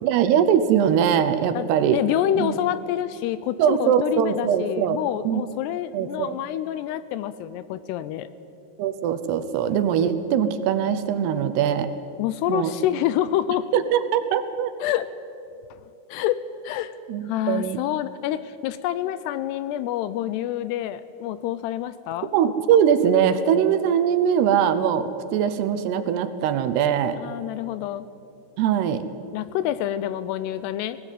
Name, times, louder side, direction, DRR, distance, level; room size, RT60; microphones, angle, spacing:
voice 1, 0.0-2.0 2.4-2.6 3.6-5.0 5.3-5.4 5.9-6.4 8.8-11.9 12.5-12.7 13.7-14.7 17.1-17.8 22.3-27.2 28.6-29.0, right 8 dB, 80° right, 11 dB, 2.9 m, -21 dB
voice 2, 1.6-8.3 12.2-13.7 14.8-15.1 15.7-15.8 16.1-17.0 17.3-22.3 27.2-28.1 29.3-31.0, left 12 dB, 80° left, 14 dB, 2.6 m, -27 dB
19.0 x 17.0 x 9.1 m, 2.6 s
omnidirectional pair, 4.9 m